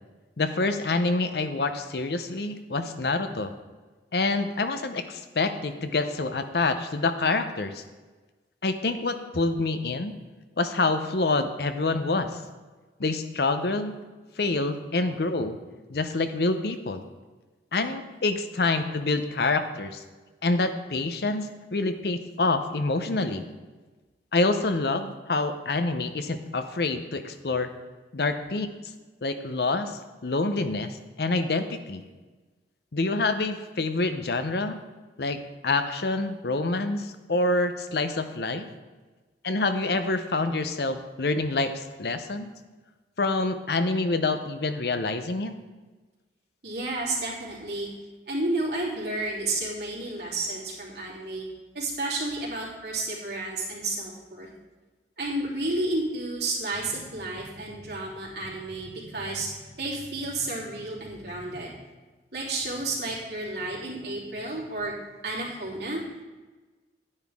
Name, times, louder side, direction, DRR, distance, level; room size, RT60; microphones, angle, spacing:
voice 1, 0.4-3.5 4.1-7.8 8.6-10.1 10.6-12.4 13.0-13.9 14.4-15.6 15.9-17.0 17.7-20.0 20.4-23.4 24.3-27.7 28.1-28.7 29.2-32.0 32.9-34.8 35.2-38.7 39.4-42.5 43.2-45.5, left 3 dB, 60° left, 9 dB, 0.7 m, -27 dB
voice 2, 46.6-47.9 48.3-51.4 51.7-54.5 55.2-61.7 62.3-64.9 65.2-66.0, right 2 dB, 65° right, -5 dB, 3.2 m, -31 dB
11.0 x 9.8 x 3.6 m, 1.3 s
head